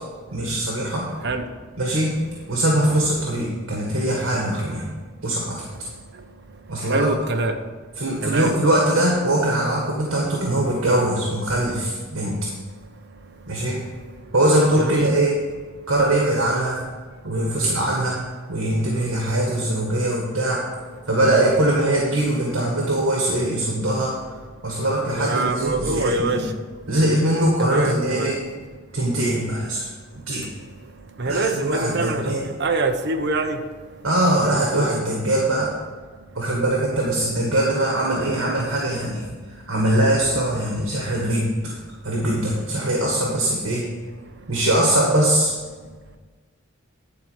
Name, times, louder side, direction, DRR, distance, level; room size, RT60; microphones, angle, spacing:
voice 1, 0.3-1.1 1.8-4.9 5.2-5.6 6.7-7.2 7.9-12.4 13.5-13.8 14.3-15.4 15.9-16.8 17.2-18.2 18.5-20.6 21.1-24.1 24.6-26.5 26.9-28.4 28.9-29.9 30.3-30.5 31.2-32.5 34.0-35.7 36.4-39.2 39.7-41.7 42.0-43.9 44.5-45.5, right 1 dB, 70° right, -3 dB, 1.9 m, -21 dB
voice 2, 6.9-7.5 8.2-8.5 14.8-15.1 25.2-26.4 27.6-28.3 31.2-32.3 32.6-33.6, right 2 dB, 55° right, 5 dB, 0.9 m, -24 dB
11.0 x 4.7 x 7.4 m, 1.4 s
head